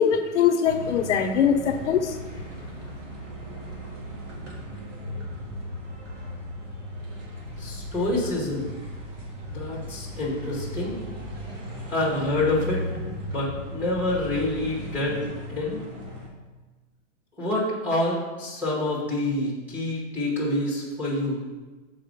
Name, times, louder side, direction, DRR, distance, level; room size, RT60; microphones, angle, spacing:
voice 1, 0.0-2.2, left 7 dB, 65° left, 6 dB, 0.7 m, -22 dB
sound 1, 0.6-16.3, equal, 70° right, 2.0 m, -36 dB
voice 2, 7.6-8.7 9.5-10.9 11.9-12.8 13.3-15.8 17.4-21.4, left 2 dB, 5° right, -6 dB, 1.0 m, -27 dB
6.5 x 4.2 x 5.2 m, 1.2 s
supercardioid pair, 175°, 38 cm